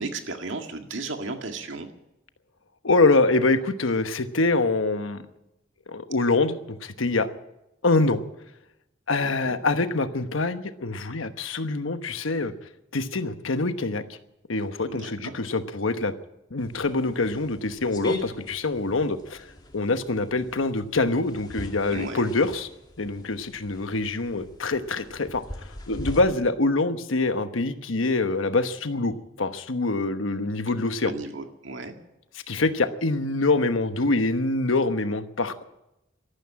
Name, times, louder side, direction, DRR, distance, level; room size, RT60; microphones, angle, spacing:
voice 1, 0.0-1.9 9.2-9.5 14.9-15.3 21.9-22.3 30.6-30.7 31.0-32.0, right 3 dB, 70° right, 5 dB, 1.9 m, -35 dB
voice 2, 2.8-5.2 5.9-7.3 7.8-8.2 9.1-12.5 12.9-14.0 14.5-16.1 16.5-19.4 19.7-22.7 23.0-31.1 32.5-35.6, left 3 dB, 85° left, 10 dB, 1.1 m, -25 dB
sound 1, 16.6-26.2, equal, 20° left, 2.4 m, -40 dB
13.5 x 12.5 x 8.8 m, 0.89 s
head